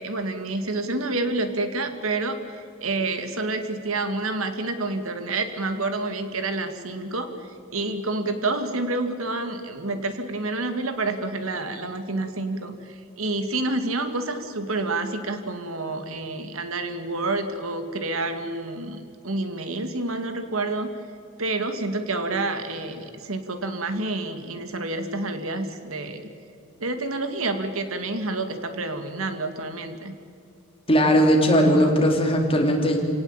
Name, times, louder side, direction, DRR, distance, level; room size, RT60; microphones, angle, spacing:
voice 1, 0.0-20.9 21.4-26.2 26.8-30.2, right 2 dB, 80° right, 8 dB, 2.1 m, -28 dB
voice 2, 30.9-33.0, equal, 25° left, 1 dB, 3.7 m, -18 dB
28.0 x 18.0 x 8.8 m, 2.6 s
head